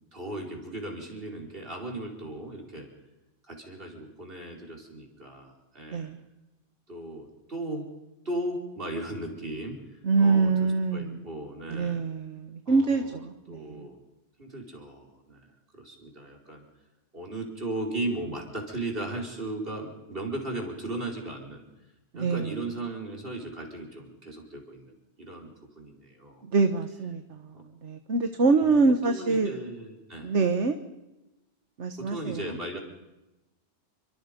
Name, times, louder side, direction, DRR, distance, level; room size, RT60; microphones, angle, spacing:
voice 1, 0.1-2.9 3.4-6.1 6.9-7.8 8.2-12.0 12.7-14.0 14.4-15.4 15.7-16.6 17.1-21.6 22.1-26.4 27.5-27.6 28.5-28.8 29.1-30.3 32.0-32.8, right 2 dB, 50° right, 0 dB, 4.8 m, -37 dB
voice 2, 10.0-11.2 11.7-13.9 22.2-22.5 26.5-29.5 30.2-30.8 31.8-32.4, right 4 dB, 75° right, 7 dB, 1.6 m, -25 dB
29.0 x 25.0 x 5.3 m, 1.0 s
omnidirectional pair, 1.2 m